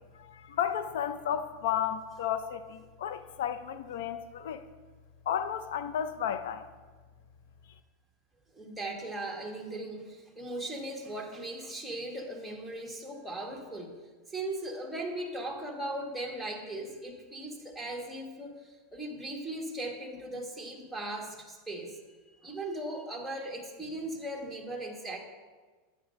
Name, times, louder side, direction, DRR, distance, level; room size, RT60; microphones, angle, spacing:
voice 1, 0.1-4.7 5.3-6.7, left 9 dB, 80° left, 11 dB, 0.4 m, -33 dB
voice 2, 8.5-14.0 14.3-22.0 22.4-25.2, right 1 dB, ahead, -1 dB, 1.5 m, -38 dB
10.5 x 8.2 x 2.6 m, 1.3 s
supercardioid pair, 125°, 0 cm